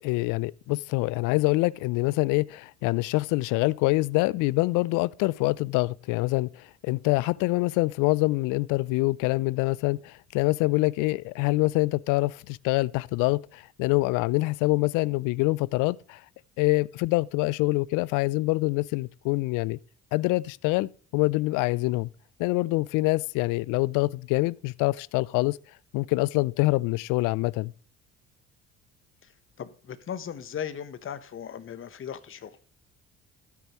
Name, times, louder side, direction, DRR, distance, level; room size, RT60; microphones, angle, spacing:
voice 1, 0.0-16.2 16.6-19.8 20.1-22.1 22.4-25.6 25.9-27.7, left 22 dB, 65° left, 0.5 m, -25 dB
voice 2, 29.6-32.6, left 8 dB, 35° left, 1.1 m, -37 dB
13.0 x 8.4 x 3.1 m
hypercardioid pair, 55°, 34 cm